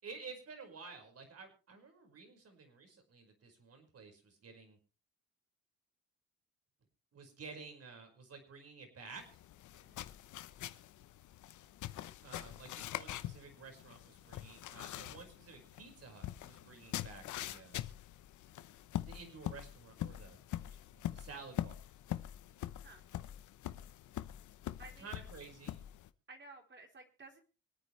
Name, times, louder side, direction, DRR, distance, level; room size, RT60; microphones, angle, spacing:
voice 1, 0.0-4.8 7.1-9.4 12.2-17.9 19.1-21.8 25.0-25.8, right 4 dB, 55° right, 5 dB, 5.3 m, -52 dB
sound 1, 9.2-26.1, left 13 dB, 75° left, 0.9 m, -44 dB
voice 2, 9.7-10.2 22.8-23.0 24.8-25.2 26.3-27.4, right 3 dB, 40° right, 3 dB, 3.7 m, -55 dB
25.0 x 9.4 x 3.3 m, 0.33 s
cardioid pair, 90°, 30 cm